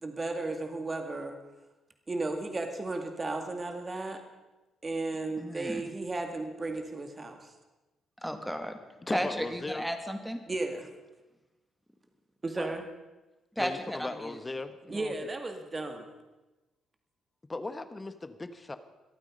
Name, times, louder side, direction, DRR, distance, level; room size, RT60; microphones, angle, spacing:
voice 1, 0.0-1.4 2.1-4.2 4.8-7.5 10.5-10.9 12.4-12.8 14.9-16.1, right 2 dB, 30° right, 5 dB, 2.2 m, -34 dB
voice 2, 5.4-5.9 8.2-8.8 9.1-10.4 13.6-14.3, equal, ahead, 6 dB, 2.3 m, -34 dB
voice 3, 9.0-9.9 12.6-12.8 13.6-15.1 17.5-18.8, left 2 dB, 25° left, 11 dB, 1.3 m, -38 dB
25.0 x 9.0 x 5.4 m, 1.1 s
hypercardioid pair, 50°, 0 cm